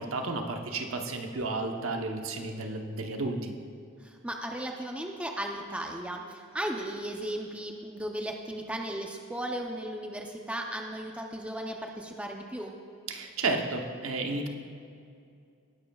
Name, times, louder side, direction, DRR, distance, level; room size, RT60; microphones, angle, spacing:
voice 1, 0.0-3.5 13.1-14.5, right 3 dB, 75° right, 3 dB, 1.0 m, -32 dB
voice 2, 4.0-12.8, right 1 dB, 5° right, 1 dB, 0.6 m, -36 dB
17.5 x 10.5 x 2.4 m, 2.4 s
head